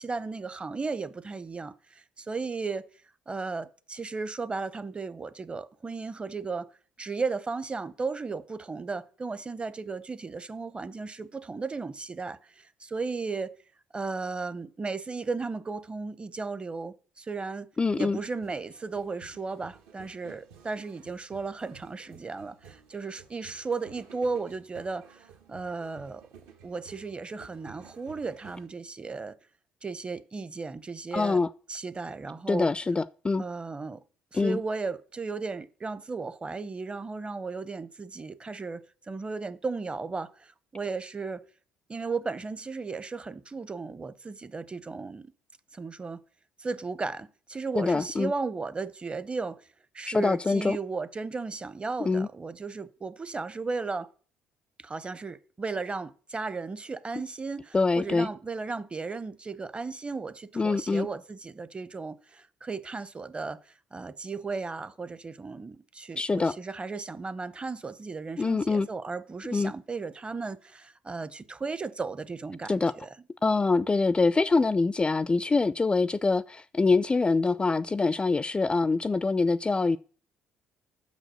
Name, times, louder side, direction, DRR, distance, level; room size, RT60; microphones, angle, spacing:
voice 1, 0.0-2.8 3.3-6.7 7.0-13.6 13.9-17.7 18.0-26.2 26.6-29.3 29.8-31.4 31.7-32.7 33.4-34.0 34.3-38.8 39.1-41.4 41.9-45.3 45.7-46.2 46.6-49.6 49.9-54.1 54.8-73.1, right 4 dB, 25° right, 0.7 m, -35 dB
voice 2, 17.8-18.2 31.1-31.5 32.5-33.4 34.3-34.6 47.7-48.3 50.1-50.8 52.0-52.3 57.7-58.3 60.6-61.1 66.2-66.5 68.4-68.9 69.5-69.7 72.7-72.9 73.4-80.0, left 3 dB, 20° left, 0.3 m, -25 dB
sound 1, 17.8-28.7, right 7 dB, 75° right, 1.3 m, -54 dB
6.1 x 5.3 x 6.2 m
hypercardioid pair, 55°, 4 cm